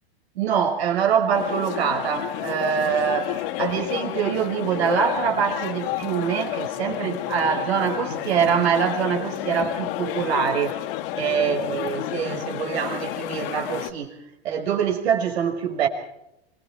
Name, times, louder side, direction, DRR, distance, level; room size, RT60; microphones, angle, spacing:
voice 1, 0.3-10.8 11.1-14.2 14.4-15.9, right 7 dB, 75° right, 5 dB, 6.1 m, -24 dB
sound 1, 1.3-13.9, left 13 dB, 60° left, 2.1 m, -30 dB
26.5 x 23.5 x 4.7 m, 0.83 s
hypercardioid pair, 130°, 32 cm